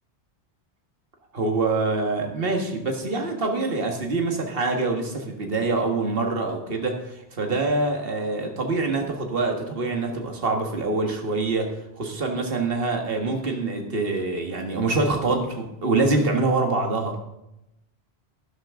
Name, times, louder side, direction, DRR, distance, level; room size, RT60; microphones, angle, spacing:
voice 1, 1.3-11.7 12.0-17.2, right 3 dB, 60° right, 3 dB, 1.9 m, -25 dB
12.0 x 11.5 x 3.8 m, 0.87 s
omnidirectional pair, 1.1 m